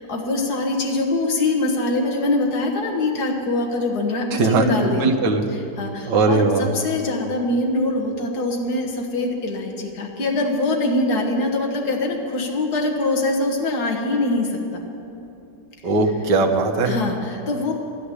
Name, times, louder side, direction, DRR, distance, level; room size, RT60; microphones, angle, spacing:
voice 1, 0.0-5.1 5.5-14.8 16.9-17.7, left 2 dB, 60° left, 1 dB, 2.1 m, -23 dB
voice 2, 4.3-5.4 6.1-6.7 15.8-17.0, right 3 dB, 75° right, 2 dB, 1.8 m, -19 dB
12.5 x 10.0 x 9.9 m, 2.7 s
omnidirectional pair, 1.9 m